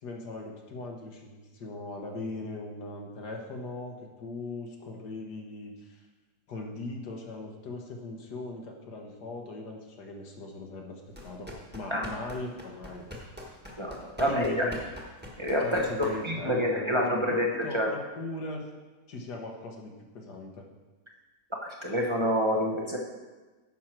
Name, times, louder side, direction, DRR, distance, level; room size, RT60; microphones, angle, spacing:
voice 1, 0.0-6.0 6.5-13.1 14.3-14.7 15.6-18.7 19.1-20.6, left 2 dB, 80° left, 1 dB, 1.7 m, -39 dB
sound 1, 11.1-16.5, left 1 dB, 5° right, 1.2 m, -44 dB
voice 2, 13.8-14.7 15.4-17.9 21.6-23.0, equal, 25° right, -1 dB, 0.8 m, -28 dB
10.0 x 6.1 x 4.5 m, 1.2 s
omnidirectional pair, 1.7 m